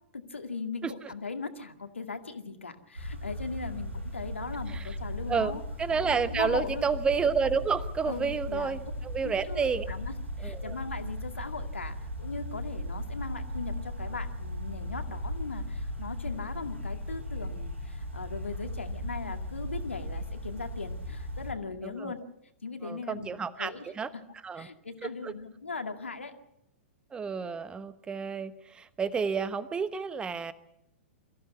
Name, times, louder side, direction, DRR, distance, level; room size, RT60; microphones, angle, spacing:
voice 1, 0.1-5.6 6.0-6.9 8.0-8.8 9.2-22.2 22.6-24.2 24.6-26.3, left 4 dB, 75° left, 6 dB, 2.1 m, -39 dB
sound 1, 2.9-21.5, left 1 dB, 80° right, 6.5 m, -37 dB
voice 2, 5.8-9.8 10.4-10.8 21.8-22.1 22.8-24.1 24.4-24.7 25.0-25.3 27.1-30.5, right 5 dB, 15° right, 14 dB, 1.1 m, -30 dB
23.5 x 14.5 x 8.2 m, 0.82 s
figure-of-eight pair, 105°, 7 cm